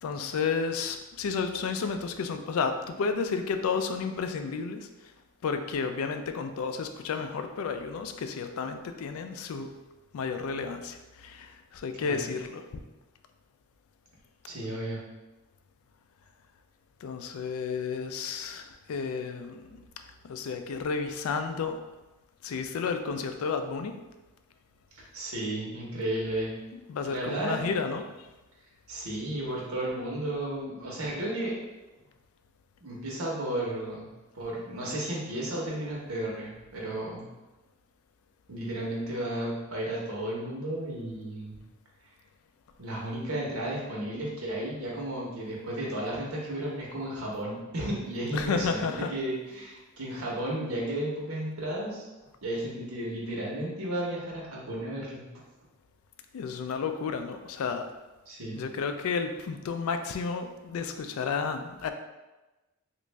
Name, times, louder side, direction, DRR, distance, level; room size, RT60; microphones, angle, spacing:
voice 1, 0.0-5.1 5.4-9.7 10.1-12.6 17.0-19.7 20.2-21.8 22.4-24.0 26.9-28.3 48.3-49.1 56.3-57.9 58.5-61.9, left 5 dB, 80° left, 8 dB, 0.3 m, -32 dB
voice 2, 14.5-15.0 25.0-26.5 27.1-27.6 28.9-31.6 32.8-34.1 34.3-37.3 38.5-41.5 42.8-52.1 52.4-55.3 58.3-58.6, right 1 dB, 85° right, -4 dB, 1.0 m, -33 dB
3.0 x 2.5 x 3.3 m, 1.1 s
head